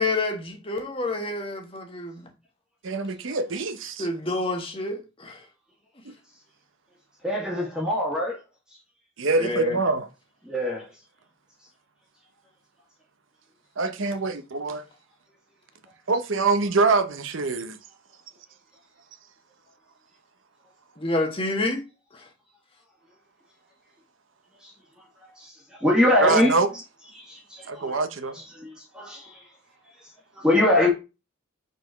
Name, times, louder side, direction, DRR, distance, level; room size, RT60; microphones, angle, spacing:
voice 1, 0.0-2.3 4.0-5.4 9.4-9.8 21.0-21.8 22.1-22.2, left 2 dB, 25° left, 1.4 m, -28 dB
voice 2, 2.8-4.1 6.0-6.1 9.2-10.1 13.8-14.9 16.1-17.8 26.2-26.7 27.7-28.4, right 3 dB, 70° right, 0.9 m, -24 dB
voice 3, 7.2-8.4 10.4-10.9 24.6-24.7 25.2-25.5 25.8-26.6 27.2-28.0 28.5-29.4 30.3-30.9, left 1 dB, 5° right, 1.7 m, -23 dB
5.1 x 4.2 x 5.6 m
head